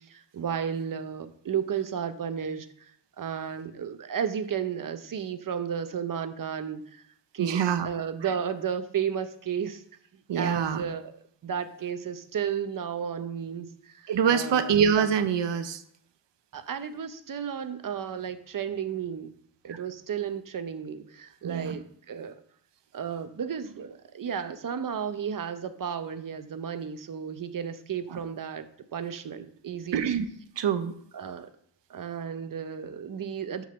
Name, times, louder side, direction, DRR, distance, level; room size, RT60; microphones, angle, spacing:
voice 1, 0.1-2.9 3.2-7.0 7.3-9.8 10.3-11.1 11.4-14.7 16.5-19.3 19.6-22.4 22.9-30.1 31.1-31.5 31.9-33.7, right 7 dB, 50° right, 10 dB, 0.7 m, -33 dB
voice 2, 7.4-7.9 8.2-8.3 10.3-10.8 14.1-15.8 21.4-21.8 28.1-28.2 29.9-30.3 30.6-30.9, right 7 dB, 80° right, 10 dB, 0.9 m, -25 dB
7.9 x 3.9 x 6.7 m, 0.67 s
wide cardioid pair, 170°, 42 cm